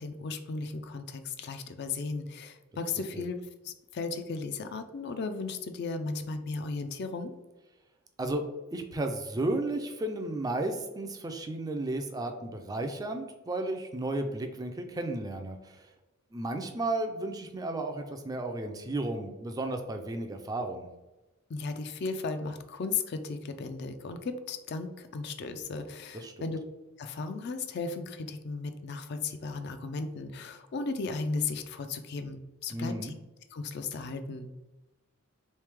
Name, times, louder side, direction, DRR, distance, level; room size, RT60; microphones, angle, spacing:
voice 1, 0.0-7.3 21.5-26.6 27.0-33.1 33.5-34.5, left 4 dB, 55° left, 8 dB, 0.4 m, -35 dB
voice 2, 8.7-15.9 16.3-20.9 26.1-26.5 32.7-33.1, right 2 dB, 20° right, 5 dB, 0.3 m, -33 dB
3.2 x 3.2 x 3.4 m, 1.0 s
head